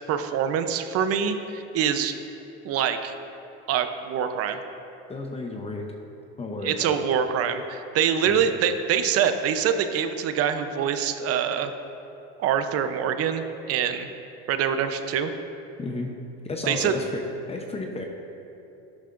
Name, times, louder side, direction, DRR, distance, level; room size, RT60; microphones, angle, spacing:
voice 1, 0.1-2.1 2.6-3.1 3.7-4.6 6.6-11.7 12.4-14.1 14.5-15.3 16.7-16.9, right 8 dB, 50° right, 8 dB, 0.8 m, -25 dB
voice 2, 5.1-5.9 6.4-7.0 8.3-8.5 15.8-16.1 16.4-17.2 17.5-18.0, left 2 dB, 20° left, 2 dB, 0.8 m, -32 dB
12.5 x 11.5 x 2.6 m, 2.9 s
supercardioid pair, 115°, 31 cm